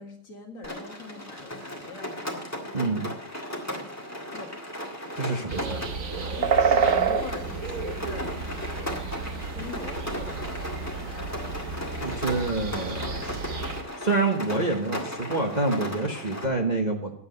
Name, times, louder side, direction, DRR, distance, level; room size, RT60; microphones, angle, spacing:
voice 1, 0.0-2.4 4.3-4.5 6.3-9.1 9.5-10.6 11.0-11.6, left 4 dB, 50° left, 1 dB, 2.0 m, -43 dB
Rain, 0.6-16.5, left 1 dB, 10° left, 1.7 m, -36 dB
voice 2, 2.7-3.1 5.1-5.8 12.0-13.4 14.0-17.1, right 3 dB, 30° right, 1 dB, 1.0 m, -27 dB
sound 1, 5.5-13.8, right 6 dB, 55° right, 1.3 m, -29 dB
9.7 x 7.7 x 7.9 m, 0.72 s
omnidirectional pair, 1.8 m